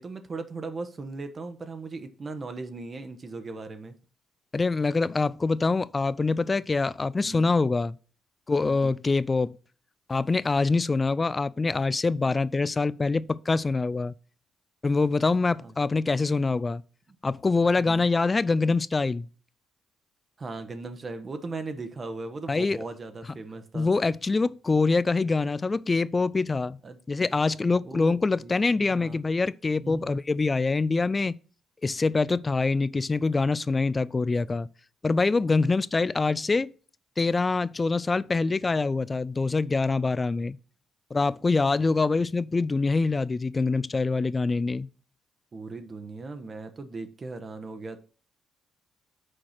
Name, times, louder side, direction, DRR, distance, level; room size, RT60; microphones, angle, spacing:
voice 1, 0.0-3.9 7.2-7.5 8.6-8.9 15.6-15.7 17.8-18.1 20.4-23.9 26.8-27.0 27.8-28.6 28.9-29.2 29.8-30.2 45.5-48.0, right 3 dB, 35° right, 1.0 m, -38 dB
voice 2, 4.5-8.0 8.5-9.5 10.1-14.1 14.8-16.8 17.2-19.3 22.5-22.8 23.7-26.8 27.1-31.3 31.8-34.7 35.0-36.7 37.2-40.6 41.1-44.9, left 3 dB, 25° left, 0.3 m, -25 dB
6.5 x 4.7 x 5.8 m
cardioid pair, 90°, 0 cm